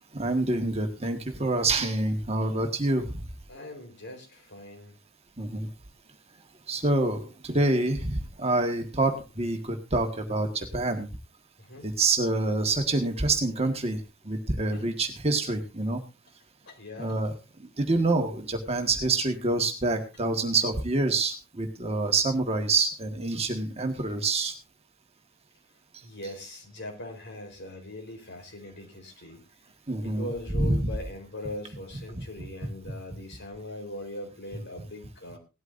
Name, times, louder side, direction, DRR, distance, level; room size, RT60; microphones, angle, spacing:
voice 1, 0.1-3.2 5.4-5.7 6.7-11.1 11.8-16.0 17.0-17.3 17.6-24.5 29.9-30.9 32.1-32.2 32.8-32.9, right 2 dB, 30° right, 4 dB, 1.7 m, -27 dB
voice 2, 3.5-5.0 11.6-11.9 14.6-14.9 16.6-17.2 26.0-29.4 30.0-35.4, left 1 dB, 55° left, 4 dB, 4.3 m, -41 dB
18.0 x 12.5 x 2.6 m, 0.29 s
head